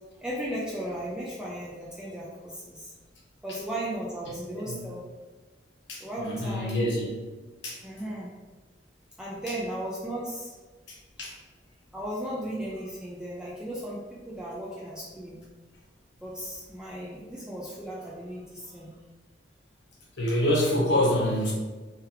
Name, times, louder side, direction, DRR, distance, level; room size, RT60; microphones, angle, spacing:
voice 1, 0.2-2.9 3.4-5.1 6.0-6.8 7.8-8.3 9.2-10.6 11.9-15.4 16.2-18.9, right 1 dB, 5° right, -6 dB, 0.5 m, -36 dB
voice 2, 5.9-7.1 7.6-7.8 10.9-11.3 20.2-21.5, left 1 dB, 85° left, -3 dB, 1.2 m, -26 dB
3.5 x 3.3 x 3.1 m, 1.3 s
head